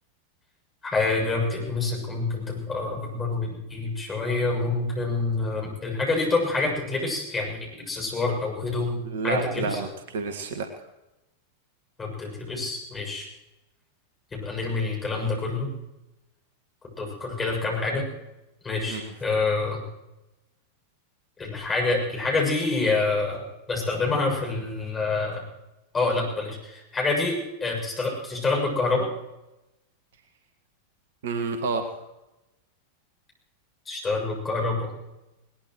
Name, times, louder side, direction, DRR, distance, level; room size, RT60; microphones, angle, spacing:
voice 1, 0.8-9.0 9.2-9.8 12.0-13.3 14.3-15.7 17.0-18.0 18.6-19.8 21.4-25.4 25.9-29.1 33.9-34.9, left 3 dB, 15° left, -1 dB, 7.3 m, -27 dB
voice 2, 9.0-10.7 18.9-19.1 31.2-32.0, right 4 dB, 60° right, 6 dB, 1.9 m, -29 dB
21.0 x 20.0 x 3.2 m, 0.95 s
figure-of-eight pair, 90°, 0 cm